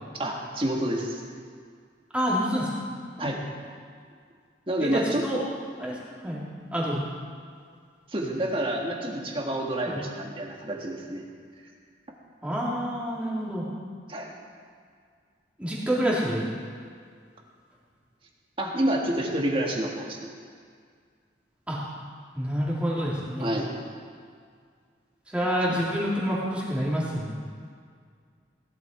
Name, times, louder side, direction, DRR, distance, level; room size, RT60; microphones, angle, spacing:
voice 1, 0.1-1.2 3.2-3.4 4.7-5.2 8.1-11.2 14.1-14.3 18.6-20.3 23.4-23.7 25.7-25.8, right 1 dB, 30° right, 0 dB, 1.7 m, -28 dB
voice 2, 2.1-2.8 3.2-3.3 4.8-5.4 5.8-6.0 6.2-6.4 6.7-7.0 9.9-10.0 12.4-13.6 15.6-16.5 21.7-21.8 22.3-23.5 25.3-27.4, equal, 5° right, -7 dB, 3.0 m, -27 dB
17.0 x 11.5 x 4.5 m, 2.1 s
head